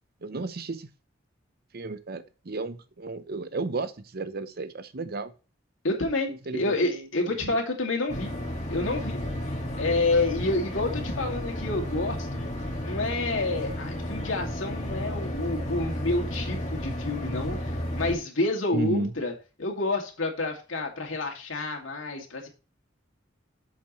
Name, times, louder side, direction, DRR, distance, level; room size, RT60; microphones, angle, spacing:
voice 1, 0.2-0.9 1.7-5.3 6.5-7.1 7.4-7.6 18.7-19.1, right 3 dB, 55° right, 12 dB, 0.7 m, -33 dB
voice 2, 5.8-8.3 8.7-9.2 9.8-12.5 12.8-19.3 19.6-22.5, left 2 dB, 80° left, 2 dB, 2.4 m, -29 dB
sound 1, 8.1-18.2, equal, 40° left, 1.9 m, -32 dB
9.4 x 7.3 x 3.1 m, 0.33 s
head